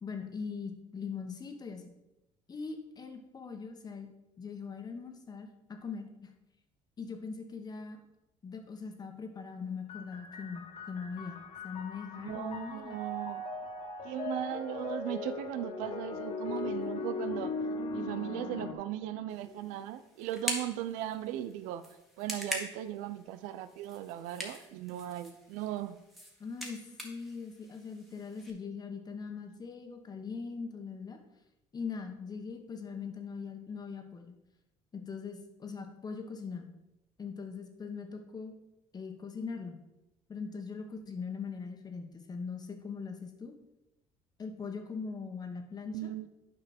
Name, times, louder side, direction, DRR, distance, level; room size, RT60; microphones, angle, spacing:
voice 1, 0.0-1.9 2.5-4.1 4.4-6.3 7.0-8.0 8.4-13.0 16.4-16.5 16.8-16.9 19.5-19.9 26.4-31.2 31.7-34.3 34.9-36.7 37.2-38.5 38.9-39.8 40.3-43.5 44.4-46.1, left 5 dB, 30° left, 5 dB, 1.3 m, -41 dB
sound 1, 9.9-18.7, left 3 dB, 55° left, 1.6 m, -39 dB
voice 2, 12.2-13.4 14.0-17.5 17.9-21.8 22.2-26.0 45.9-46.3, right 12 dB, 90° right, 13 dB, 0.5 m, -38 dB
sound 2, 19.3-28.5, equal, ahead, 1.7 m, -43 dB
9.2 x 5.4 x 4.3 m, 0.94 s
cardioid pair, 100°, 13 cm